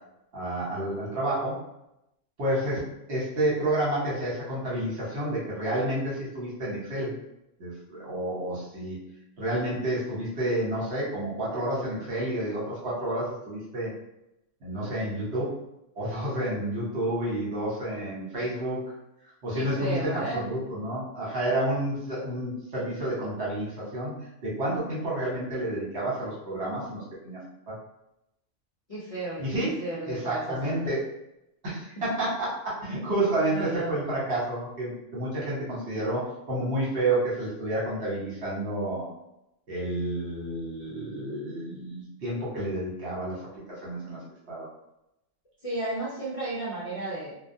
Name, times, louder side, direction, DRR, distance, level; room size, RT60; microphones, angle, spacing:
voice 1, 0.3-1.6 2.4-2.8 3.1-7.1 7.6-9.0 9.4-13.9 14.6-15.5 16.0-18.9 19.4-27.4 29.4-29.7 30.1-31.0 31.6-32.5 32.8-36.2 36.5-39.0 39.7-43.4 43.7-44.2 44.5-44.7, right 1 dB, 60° right, -7 dB, 1.2 m, -30 dB
voice 2, 19.5-20.4 28.9-30.9 33.5-33.9 45.6-47.3, right 2 dB, 45° left, -8 dB, 0.5 m, -33 dB
2.2 x 2.2 x 2.6 m, 0.85 s
omnidirectional pair, 1.3 m